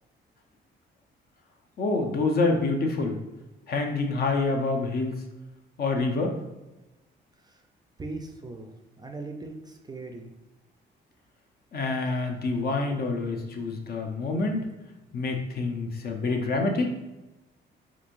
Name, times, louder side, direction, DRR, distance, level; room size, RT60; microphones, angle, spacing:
voice 1, 1.8-3.2 3.7-5.2 5.8-6.3 11.7-14.7 15.1-16.9, left 3 dB, 50° left, 3 dB, 0.6 m, -27 dB
voice 2, 8.0-10.3 12.9-13.0, right 2 dB, 20° right, 3 dB, 0.4 m, -40 dB
3.6 x 3.0 x 2.5 m, 1.0 s
cardioid pair, 90°, 20 cm